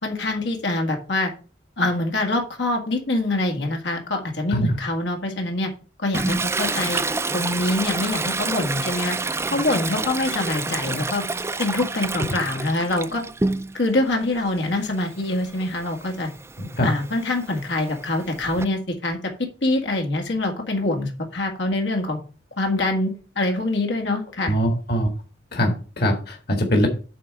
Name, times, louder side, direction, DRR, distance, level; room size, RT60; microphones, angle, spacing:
voice 1, 0.0-1.3 1.8-5.7 6.0-7.0 7.3-9.2 9.5-11.2 11.6-13.2 13.7-16.3 16.8-22.2 22.6-24.6, left 2 dB, 85° left, 2 dB, 2.0 m, -24 dB
Toilet flush, 6.1-13.9 14.3-18.6, right 3 dB, 15° right, 0.4 m, -29 dB
voice 2, 16.6-16.9 24.4-25.1 25.5-26.9, equal, 60° left, 3 dB, 1.7 m, -22 dB
8.3 x 3.8 x 6.8 m, 0.37 s
head